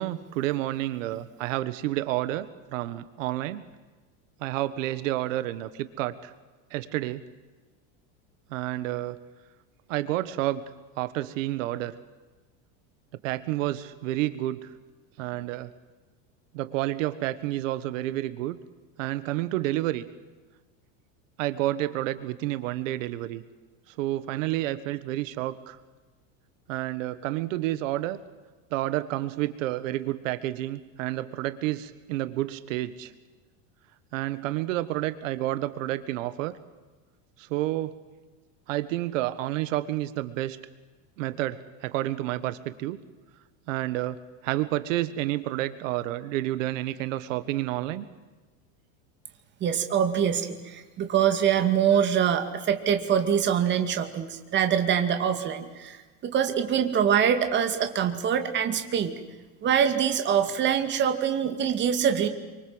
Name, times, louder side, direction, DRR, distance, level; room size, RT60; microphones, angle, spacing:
voice 1, 0.0-3.6 4.4-6.3 6.7-7.2 8.5-9.2 9.9-10.6 11.0-11.9 13.2-14.7 15.2-15.7 16.5-18.6 19.0-20.0 21.4-23.4 24.0-25.8 26.7-28.2 28.7-33.1 34.1-36.5 37.4-37.9 38.7-40.6 41.2-43.0 43.7-44.2 44.4-48.0, right 15 dB, 80° right, 14 dB, 1.5 m, -30 dB
voice 2, 49.6-59.2 59.6-62.3, right 8 dB, 30° right, 7 dB, 2.4 m, -24 dB
27.5 x 25.0 x 7.9 m, 1.3 s
supercardioid pair, 160°, 38 cm